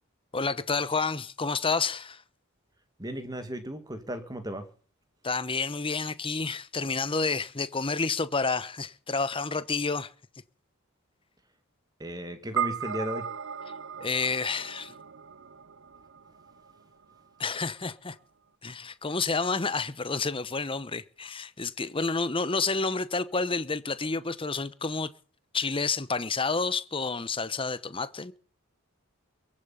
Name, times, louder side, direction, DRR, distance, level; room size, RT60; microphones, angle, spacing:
voice 1, 0.3-2.2 5.2-10.1 14.0-14.9 17.4-18.2 18.6-25.1 25.5-28.3, left 4 dB, 25° left, 1.0 m, -29 dB
voice 2, 3.0-4.7 12.0-13.3, equal, 20° right, 2.2 m, -35 dB
sound 1, 12.6-17.1, right 7 dB, 60° right, 0.9 m, -36 dB
23.0 x 8.6 x 5.7 m
head